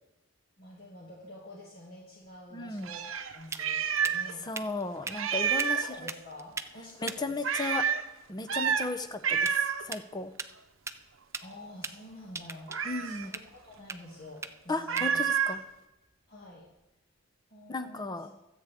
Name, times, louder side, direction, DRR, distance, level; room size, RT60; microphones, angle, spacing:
voice 1, 0.6-4.4 5.5-7.7 11.4-15.2 16.3-16.7 17.5-18.2, left 1 dB, 50° left, -4 dB, 2.3 m, -48 dB
sound 1, 2.2-16.9, right 4 dB, 15° right, 0.5 m, -45 dB
voice 2, 2.5-2.9 4.4-5.8 7.0-7.8 8.3-9.6 9.8-10.3 12.8-13.3 14.7-15.6 17.7-18.3, left 3 dB, 20° left, 8 dB, 0.7 m, -35 dB
Meow, 2.8-4.4 4.6-4.7 5.1-6.0 7.4-8.0 8.5-8.9 9.2-9.9 12.7-13.3 14.9-15.6, right 7 dB, 80° right, 0.9 m, -29 dB
23.5 x 8.3 x 3.6 m, 0.96 s
head